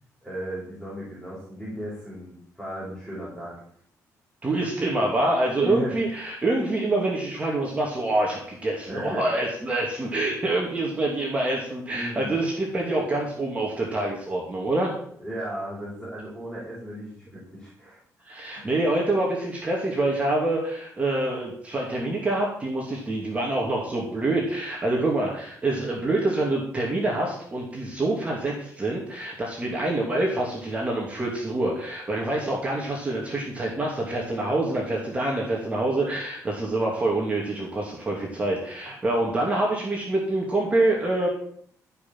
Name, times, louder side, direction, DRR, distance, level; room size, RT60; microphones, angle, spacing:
voice 1, 0.2-3.6 5.6-6.0 8.9-9.2 11.9-12.3 15.2-18.0 18.6-18.7, equal, ahead, -7 dB, 6.4 m, -35 dB
voice 2, 4.4-14.9 18.2-41.3, right 2 dB, 20° right, -2 dB, 2.7 m, -26 dB
15.0 x 6.0 x 7.7 m, 0.63 s
cardioid pair, 140°, 6 cm